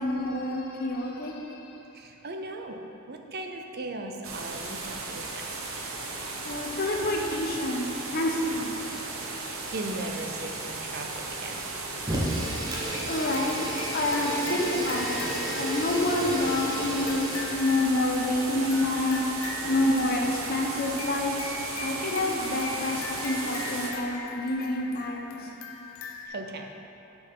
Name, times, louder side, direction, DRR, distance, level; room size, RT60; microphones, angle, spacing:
voice 1, 0.0-1.7 6.4-8.7 13.1-13.6 13.9-15.3 15.5-19.2 19.6-25.5, left 1 dB, 45° left, 0 dB, 0.9 m, -28 dB
voice 2, 1.7-2.8 3.1-5.6 9.4-11.7 26.2-26.8, right 2 dB, 50° right, 4 dB, 0.6 m, -38 dB
sound 1, 4.2-23.9, right 3 dB, 85° right, 1.0 m, -36 dB
Fire, 12.0-17.6, equal, 20° right, 1.2 m, -33 dB
sound 2, 12.9-26.3, left 3 dB, 80° left, 0.6 m, -41 dB
6.5 x 6.2 x 5.5 m, 3.0 s
head